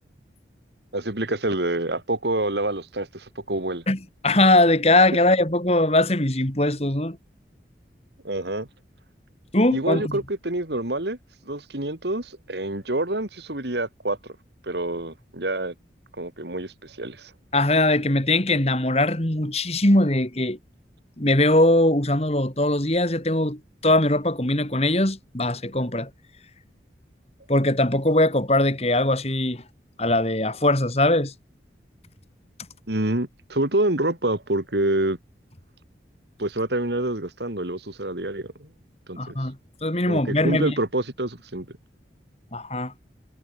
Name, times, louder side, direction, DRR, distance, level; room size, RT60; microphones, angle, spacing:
voice 1, 0.9-3.8 8.2-8.7 9.7-11.2 11.5-14.2 14.6-15.7 16.2-17.3 32.9-35.2 36.4-38.7 39.1-39.3 40.1-41.7, right 1 dB, 70° right, 2.6 m, -27 dB
voice 2, 4.2-7.2 9.5-10.1 17.5-20.6 21.2-26.1 27.5-29.6 30.0-31.3 39.2-39.6 39.8-40.7 42.5-42.9, left 1 dB, 35° left, 3.2 m, -21 dB
head